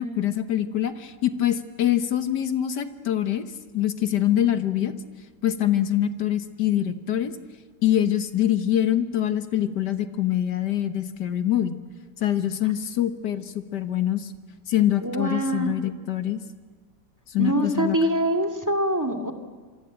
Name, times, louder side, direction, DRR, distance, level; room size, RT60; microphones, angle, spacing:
voice 1, 0.0-3.5 3.7-4.9 5.4-7.3 7.8-11.8 12.2-14.3 14.7-16.4 17.3-18.0, left 11 dB, 75° left, 9 dB, 1.9 m, -24 dB
voice 2, 15.0-15.8 17.4-19.3, right 1 dB, 10° right, 7 dB, 2.2 m, -24 dB
27.0 x 24.5 x 8.9 m, 1.4 s
omnidirectional pair, 1.8 m